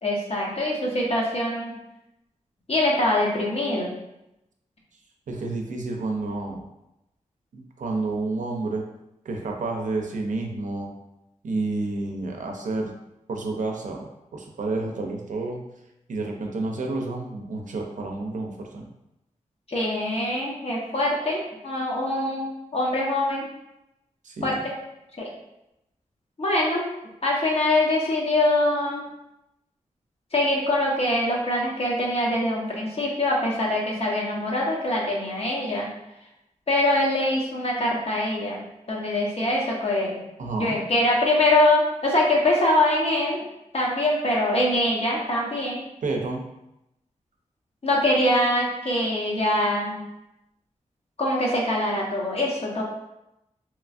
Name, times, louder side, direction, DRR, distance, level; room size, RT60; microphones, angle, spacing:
voice 1, 0.0-1.8 2.7-3.9 19.7-23.5 24.4-24.7 25.2-25.3 26.4-26.9 27.2-29.0 30.3-35.9 36.7-38.6 38.9-40.2 40.6-43.4 43.7-45.8 47.8-50.0 51.2-52.8, left 1 dB, 50° left, -3 dB, 0.8 m, -23 dB
voice 2, 5.3-6.6 7.5-8.8 9.2-10.9 11.4-13.0 13.3-14.1 14.3-15.6 16.1-18.8 24.2-24.6 40.4-40.8 46.0-46.4, right 3 dB, 75° right, 1 dB, 0.5 m, -30 dB
3.0 x 2.4 x 2.4 m, 0.89 s
cardioid pair, 60°, 13 cm